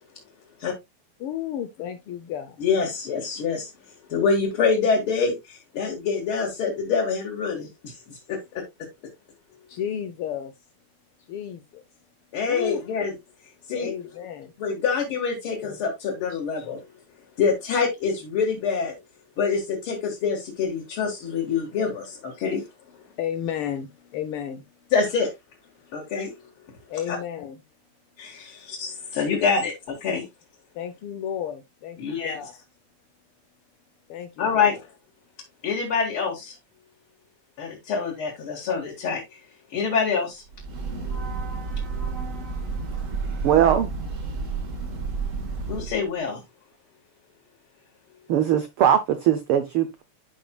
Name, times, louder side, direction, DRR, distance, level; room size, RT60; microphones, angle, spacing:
voice 1, 1.2-2.6 3.3-3.4 9.7-10.5 11.3-11.8 12.5-12.8 13.7-14.5 16.3-16.7 22.3-22.4 23.1-24.6 26.9-27.6 28.5-28.7 30.7-32.5 34.1-34.8, left 9 dB, 85° left, 1.2 m, -33 dB
voice 2, 2.6-3.7 4.1-8.4 12.3-13.1 13.7-13.9 14.6-16.8 17.4-19.0 19.4-22.6 24.9-25.3 25.9-26.4 27.1-27.2 28.2-30.3 32.0-32.3 34.4-34.7 35.6-36.6 37.6-39.4 39.7-40.4 45.7-46.4, left 5 dB, 50° left, 2.3 m, -26 dB
Breathing / Train, 40.5-46.0, right 4 dB, 45° right, 1.1 m, -31 dB
voice 3, 43.4-43.9 48.3-50.0, right 10 dB, 85° right, 1.2 m, -20 dB
12.0 x 5.2 x 2.3 m
omnidirectional pair, 3.3 m